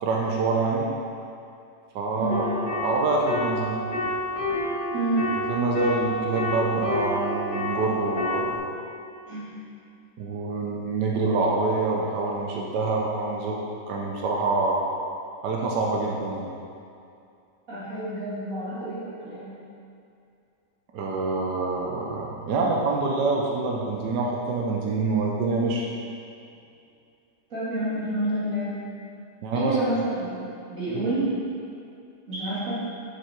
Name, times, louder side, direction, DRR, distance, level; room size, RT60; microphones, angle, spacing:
voice 1, 0.0-0.9 1.9-2.4 2.8-3.8 5.5-8.6 10.2-13.6 13.9-14.9 15.4-16.5 20.9-25.9 29.4-29.8 30.9-31.0, right 3 dB, 80° right, -2 dB, 1.4 m, -26 dB
sound 1, 2.3-8.6, left 1 dB, 65° left, 1.7 m, -29 dB
voice 2, 4.9-5.3 9.3-9.5 17.7-19.5 27.5-28.8 29.5-31.3 32.3-32.7, right 2 dB, 50° right, -11 dB, 2.7 m, -28 dB
7.1 x 7.1 x 4.5 m, 2.5 s
omnidirectional pair, 1.8 m